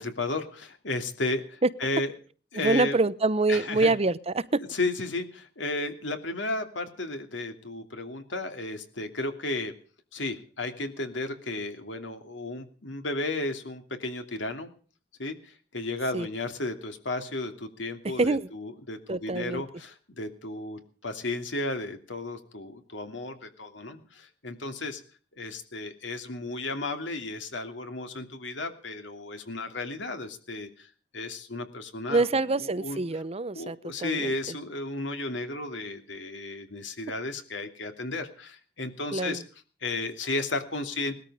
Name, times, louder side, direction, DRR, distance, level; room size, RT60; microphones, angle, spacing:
voice 1, 0.0-2.1 2.5-3.0 3.5-4.0 4.7-9.7 10.1-14.7 15.2-25.0 25.3-32.3 32.6-33.0 33.5-39.4 39.8-41.2, left 2 dB, 75° left, 7 dB, 2.8 m, -34 dB
voice 2, 2.5-4.6 16.1-16.3 18.0-18.5 19.1-19.6 32.1-34.3 39.1-39.4, right 3 dB, 35° right, 15 dB, 0.8 m, -26 dB
19.5 x 13.5 x 5.0 m, 0.41 s
head